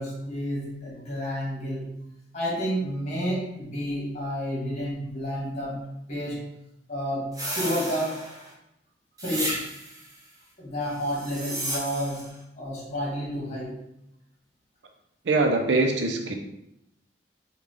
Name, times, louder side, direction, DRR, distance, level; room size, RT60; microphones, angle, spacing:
voice 1, 0.0-2.0 2.3-6.5 6.9-8.3 9.2-9.7 10.6-13.8, equal, 40° left, -5 dB, 1.4 m, -30 dB
sound 1, 7.3-8.5 9.2-10.1 11.0-12.3, right 1 dB, 20° right, 0.6 m, -33 dB
voice 2, 15.3-16.3, right 2 dB, 75° right, 3 dB, 0.5 m, -23 dB
3.3 x 2.3 x 3.6 m, 0.81 s
head